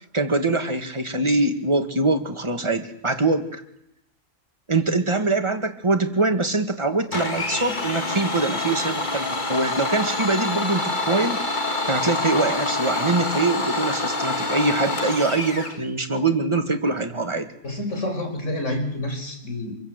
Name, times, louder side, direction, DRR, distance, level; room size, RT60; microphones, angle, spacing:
voice 1, 0.1-3.6 4.7-11.4 11.9-17.5, right 3 dB, 25° right, 6 dB, 1.9 m, -23 dB
Domestic sounds home sounds, 7.1-15.8, left 2 dB, 40° left, 2.2 m, -26 dB
voice 2, 17.6-19.8, left 1 dB, 75° left, 4 dB, 5.5 m, -28 dB
26.0 x 22.5 x 8.1 m, 0.81 s
omnidirectional pair, 1.3 m